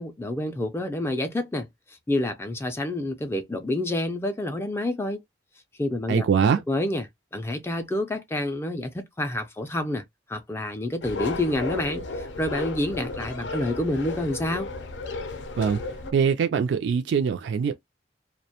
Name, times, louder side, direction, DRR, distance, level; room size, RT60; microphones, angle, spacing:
voice 1, 0.0-5.2 5.8-6.2 6.7-7.0 7.3-10.0 10.3-14.7, left 1 dB, 15° left, 0.3 m, -28 dB
voice 2, 6.1-6.6 15.6-15.8 16.1-17.8, right 6 dB, 80° right, 0.3 m, -23 dB
sound 1, 11.0-16.1, left 3 dB, 85° left, 0.5 m, -34 dB
2.4 x 2.1 x 2.8 m
head